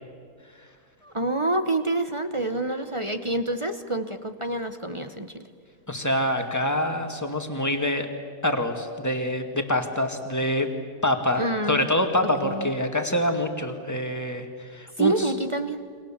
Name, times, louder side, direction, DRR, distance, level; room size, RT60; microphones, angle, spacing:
voice 1, 1.0-5.5 11.4-11.9 12.4-12.7 15.0-15.8, right 2 dB, 25° right, 9 dB, 0.8 m, -27 dB
voice 2, 5.9-8.1 8.4-10.7 11.0-15.3, left 1 dB, 10° left, 4 dB, 2.0 m, -26 dB
29.5 x 25.0 x 7.4 m, 2.1 s
omnidirectional pair, 1.9 m